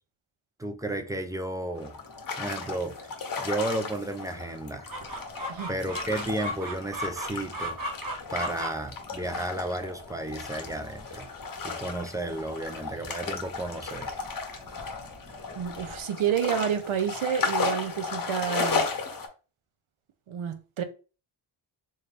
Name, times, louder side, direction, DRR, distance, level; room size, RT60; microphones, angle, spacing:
voice 1, 0.6-1.9 2.4-3.1 3.4-4.9 5.7-7.8 8.3-11.3 11.6-14.1, right 1 dB, 10° right, 0.4 m, -33 dB
sound 1, 1.7-19.3, left 4 dB, 45° left, 0.8 m, -35 dB
Chicken rooster, 4.9-16.0, equal, 45° right, 1.2 m, -39 dB
voice 2, 15.6-18.8 20.3-20.8, right 8 dB, 80° right, 0.7 m, -29 dB
3.7 x 2.6 x 3.3 m
wide cardioid pair, 125°, 49 cm